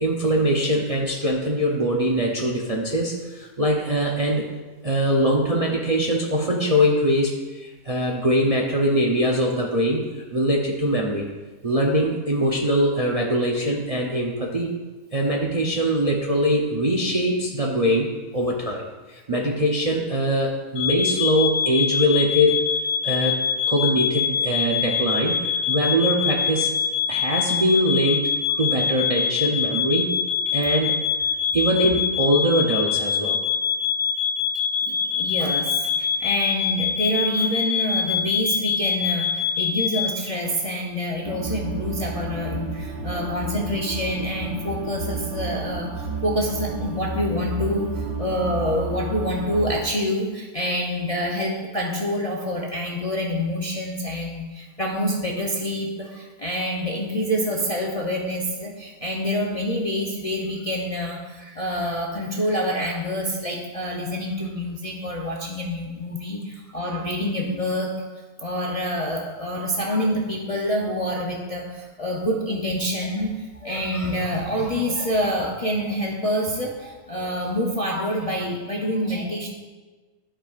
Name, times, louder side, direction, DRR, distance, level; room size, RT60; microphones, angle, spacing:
voice 1, 0.0-4.5 4.8-11.3 11.6-14.7 15.1-22.6 23.0-23.4 23.7-26.7 27.1-28.3 28.6-30.2 30.5-31.0 31.5-33.4, equal, 40° right, -1 dB, 0.5 m, -22 dB
sound 1, 20.8-40.1, left 7 dB, 85° left, 1.2 m, -24 dB
voice 2, 34.9-68.0 68.4-79.5, equal, 40° left, -2 dB, 0.5 m, -27 dB
sound 2, 41.2-49.8, right 3 dB, 60° right, 1.0 m, -31 dB
13.0 x 5.0 x 2.4 m, 1.3 s
omnidirectional pair, 1.6 m